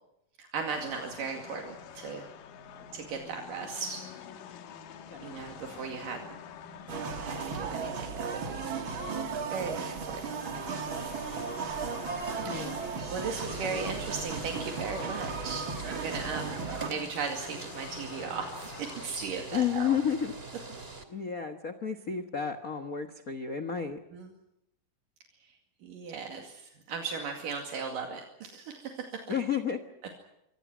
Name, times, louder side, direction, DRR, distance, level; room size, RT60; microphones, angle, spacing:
voice 1, 0.4-2.3 2.9-4.0 5.2-6.4 7.2-8.7 9.0-9.2 9.5-10.4 12.5-12.6 13.1-16.6 16.9-19.9 24.1-24.3 25.4-25.5 25.8-29.3, right 5 dB, 75° right, 3 dB, 3.9 m, -37 dB
sound 1, 0.7-19.1, left 7 dB, 85° left, 3.2 m, -47 dB
sound 2, 6.9-16.9, right 5 dB, 40° right, 2.4 m, -36 dB
voice 2, 12.5-13.0 19.5-20.3 21.1-24.0 29.3-29.8, left 7 dB, 65° left, 7 dB, 0.8 m, -31 dB
sound 3, 13.4-21.0, right 3 dB, 20° right, 2.4 m, -44 dB
28.0 x 24.5 x 6.2 m, 0.82 s
omnidirectional pair, 3.9 m